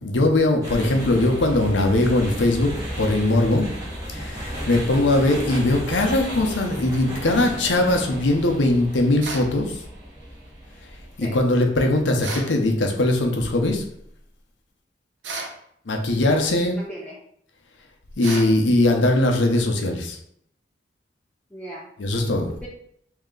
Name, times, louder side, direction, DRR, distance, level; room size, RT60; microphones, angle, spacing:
voice 1, 0.0-2.7 3.0-3.7 4.1-9.7 11.2-13.8 15.9-16.8 18.2-20.2 22.0-22.5, left 2 dB, 80° left, 2 dB, 0.7 m, -20 dB
sound 1, 0.6-12.7, equal, 20° right, 1.1 m, -34 dB
sound 2, 9.2-9.5 12.2-12.5 15.2-15.6 18.2-18.5, right 3 dB, 80° right, 0.8 m, -32 dB
voice 2, 16.1-17.2 21.5-21.9 22.6-22.7, equal, 5° left, -6 dB, 0.5 m, -39 dB
3.2 x 2.8 x 3.8 m, 0.69 s
head